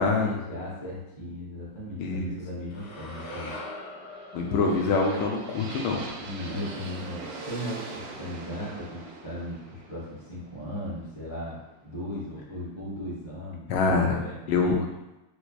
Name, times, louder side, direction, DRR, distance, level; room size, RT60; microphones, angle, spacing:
voice 1, 0.0-3.5 4.4-4.7 6.2-14.8, equal, 35° left, -6 dB, 0.4 m, -37 dB
voice 2, 2.0-2.4 4.3-6.0 13.7-14.2 14.5-14.8, left 4 dB, 80° left, 0 dB, 1.4 m, -25 dB
sound 1, 2.7-6.9, left 1 dB, 65° left, 1.2 m, -43 dB
sound 2, 3.9-11.9, right 3 dB, 70° right, 1.1 m, -42 dB
4.4 x 2.6 x 2.3 m, 0.97 s
omnidirectional pair, 2.3 m